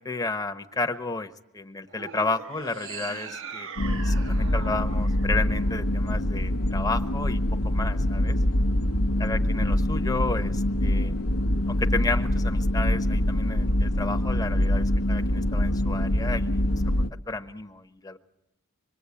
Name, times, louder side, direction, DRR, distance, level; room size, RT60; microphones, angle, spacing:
voice 1, 0.0-8.4 9.2-11.1 11.7-16.6 17.3-18.2, left 3 dB, 15° left, 6 dB, 1.0 m, -32 dB
sound 1, 1.9-6.3, right 6 dB, 60° right, 1.0 m, -41 dB
sound 2, 3.8-17.1, left 1 dB, 70° left, 0.9 m, -24 dB
25.5 x 22.5 x 8.5 m, 0.90 s
head